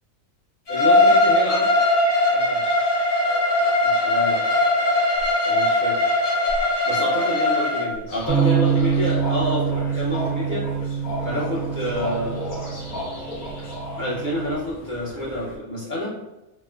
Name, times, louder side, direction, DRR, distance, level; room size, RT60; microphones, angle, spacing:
Bowed string instrument, 0.7-7.9, left 2 dB, 65° left, 1.2 m, -20 dB
voice 1, 0.7-1.7 2.3-3.4 3.8-4.4 5.5-6.1 6.8-10.7 11.2-12.8 14.0-16.1, left 1 dB, 45° left, -6 dB, 0.7 m, -28 dB
sound 1, 8.1-15.6, left 1 dB, 80° left, 1.4 m, -34 dB
Bass guitar, 8.3-14.5, right 7 dB, 60° right, 0.6 m, -26 dB
4.3 x 2.0 x 2.2 m, 0.98 s
omnidirectional pair, 1.4 m